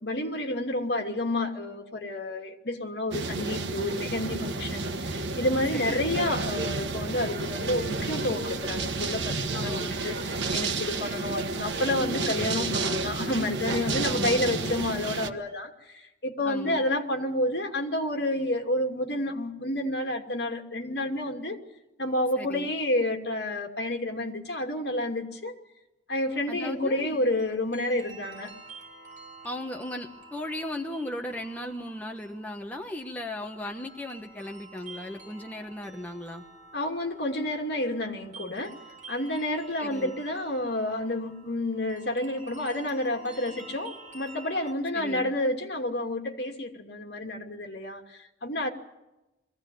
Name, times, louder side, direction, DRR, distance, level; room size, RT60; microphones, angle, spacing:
voice 1, 0.0-21.6 22.0-25.5 26.1-28.5 36.7-38.7 39.1-48.7, left 1 dB, 60° left, 3 dB, 2.7 m, -30 dB
sound 1, 3.1-15.3, right 3 dB, 80° right, 1.4 m, -31 dB
voice 2, 5.7-6.0 9.5-10.0 14.0-14.5 16.4-16.8 22.4-22.7 26.5-27.2 29.4-36.4 39.8-40.1 44.9-45.3, left 1 dB, 10° left, 2 dB, 1.1 m, -37 dB
sound 2, 6.2-12.1, right 2 dB, 65° right, 1.3 m, -40 dB
sound 3, 26.2-44.7, right 3 dB, 40° right, 6.0 m, -49 dB
23.0 x 16.0 x 9.4 m, 0.98 s
head